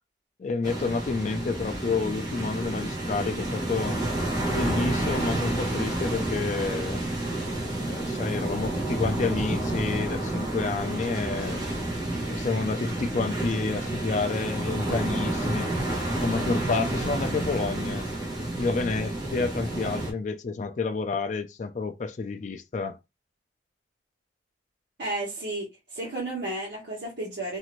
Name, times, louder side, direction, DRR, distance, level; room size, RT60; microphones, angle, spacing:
voice 1, 0.4-4.0 4.5-7.0 7.8-11.6 12.3-15.7 16.2-18.0 18.6-23.0, left 4 dB, 40° left, 0.3 m, -29 dB
sound 1, 0.6-20.1, right 1 dB, 20° right, 0.9 m, -30 dB
voice 2, 25.0-27.6, right 2 dB, 65° right, 1.2 m, -33 dB
2.7 x 2.5 x 3.0 m
head